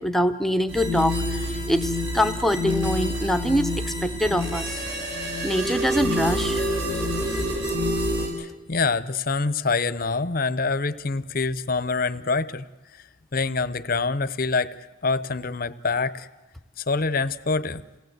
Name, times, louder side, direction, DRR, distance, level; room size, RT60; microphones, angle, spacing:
voice 1, 0.0-3.7 4.0-4.8 5.4-6.6, equal, ahead, 8 dB, 0.8 m, -24 dB
sound 1, 0.7-8.3, left 1 dB, 55° right, 7.2 m, -27 dB
voice 2, 8.4-12.6 13.3-14.7 15.0-16.3 16.8-17.8, left 4 dB, 45° left, 14 dB, 0.7 m, -25 dB
28.5 x 19.0 x 8.0 m, 1.1 s
head